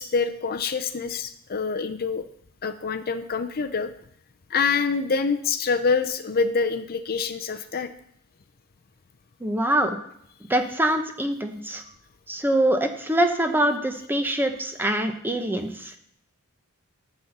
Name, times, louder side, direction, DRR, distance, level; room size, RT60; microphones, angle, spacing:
voice 1, 0.0-2.2 2.6-3.9 4.5-7.9, left 5 dB, 45° left, 9 dB, 0.6 m, -26 dB
voice 2, 9.4-10.0 10.5-11.8 12.3-16.0, right 1 dB, 10° right, 6 dB, 0.9 m, -24 dB
11.0 x 4.3 x 7.9 m, 0.69 s
head